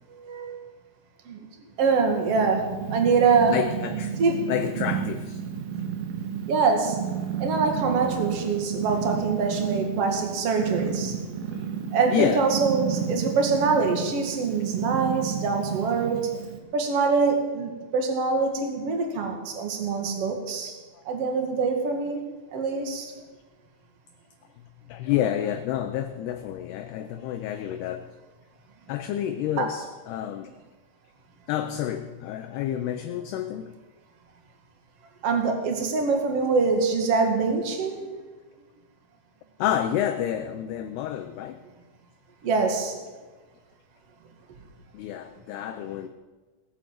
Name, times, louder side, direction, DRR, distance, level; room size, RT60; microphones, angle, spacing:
voice 1, 0.1-0.6 1.3-1.4 1.8-3.6 4.2-4.5 6.5-7.0 7.4-11.2 11.5-11.6 11.9-16.2 16.7-20.7 21.1-22.2 22.5-23.1 29.6-29.7 35.2-38.1 42.4-42.9, right 4 dB, 45° right, 3 dB, 2.2 m, -24 dB
Purr, 1.8-16.6, right 7 dB, 85° right, 4.1 m, -32 dB
voice 2, 3.5-4.2 4.5-5.4 11.5-11.7 12.1-12.5 20.9-21.0 23.2-23.3 24.9-28.0 28.9-30.5 31.5-33.7 39.6-41.6 44.9-46.1, left 10 dB, 80° left, 8 dB, 2.4 m, -29 dB
19.0 x 8.8 x 7.6 m, 1.3 s
omnidirectional pair, 5.3 m